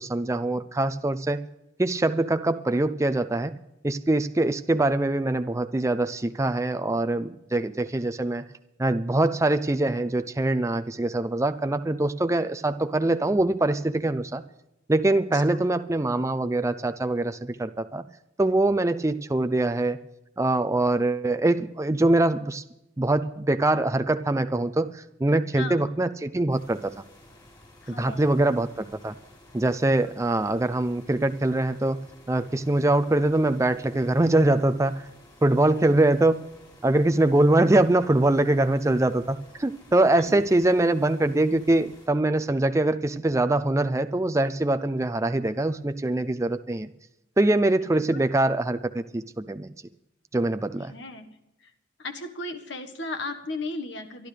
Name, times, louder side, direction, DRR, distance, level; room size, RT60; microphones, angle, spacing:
voice 1, 0.0-1.4 1.8-3.5 3.8-8.4 8.8-14.4 14.9-18.0 18.4-20.0 20.4-22.6 23.0-26.9 28.0-29.1 29.5-32.0 32.3-35.0 35.4-36.4 36.8-46.9 47.4-49.7 50.3-50.9, right 2 dB, 15° right, 10 dB, 0.4 m, -23 dB
voice 2, 25.5-25.8 27.8-28.3 40.3-40.4 47.9-48.0 50.9-51.3 51.6-51.7 52.0-54.3, left 2 dB, 65° left, 6 dB, 1.5 m, -35 dB
sound 1, 26.5-42.1, left 1 dB, 20° left, 5.0 m, -53 dB
24.0 x 12.0 x 3.3 m, 0.89 s
head